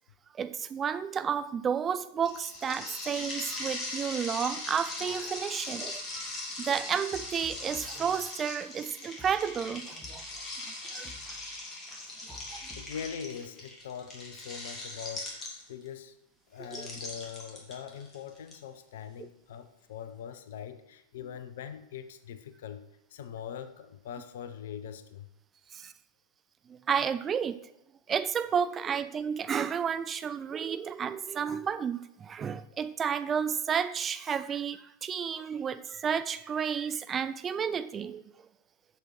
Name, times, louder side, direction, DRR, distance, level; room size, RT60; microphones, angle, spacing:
voice 1, 0.4-10.2 10.9-11.1 12.3-12.7 16.6-16.9 25.7-25.9 26.7-27.6 28.1-38.3, right 7 dB, 25° right, 0.4 m, -32 dB
sound 1, 2.2-15.9 16.6-18.5, left 2 dB, 25° left, 2.3 m, -40 dB
sound 2, 7.1-9.8 10.0-11.6 11.9-13.5, left 1 dB, 5° right, 1.6 m, -52 dB
voice 2, 12.8-16.2 16.5-22.8 23.1-25.3, left 8 dB, 60° left, 0.6 m, -42 dB
7.6 x 6.7 x 4.6 m
figure-of-eight pair, 90°, 0 cm